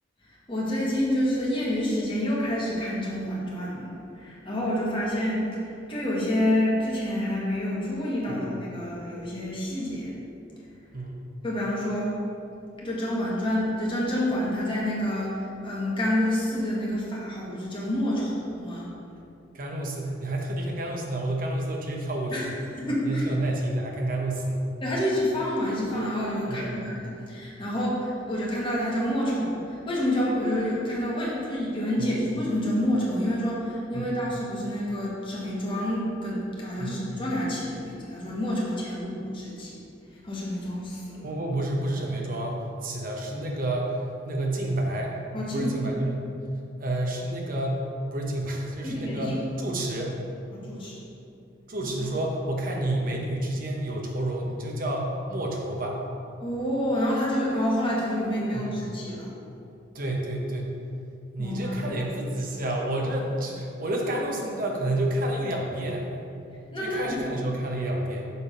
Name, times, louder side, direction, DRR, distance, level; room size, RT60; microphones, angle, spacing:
voice 1, 0.5-5.6 5.9-10.2 11.4-12.2 12.8-18.9 22.3-22.5 22.8-23.2 24.8-39.7 40.2-41.3 45.3-45.7 48.8-49.4 50.5-51.0 56.4-59.3 61.4-61.9 66.7-67.2, left 1 dB, 25° left, -5 dB, 1.4 m, -28 dB
voice 2, 19.5-22.6 23.0-24.6 26.5-27.0 32.0-32.1 33.9-34.2 36.8-37.1 41.2-43.9 44.2-45.1 45.5-46.3 46.8-47.8 48.1-50.2 51.7-56.0 58.5-58.6 59.9-60.7 61.3-66.1 66.8-68.3, right 1 dB, 45° right, 0 dB, 0.9 m, -29 dB
6.7 x 3.6 x 4.9 m, 2.6 s
head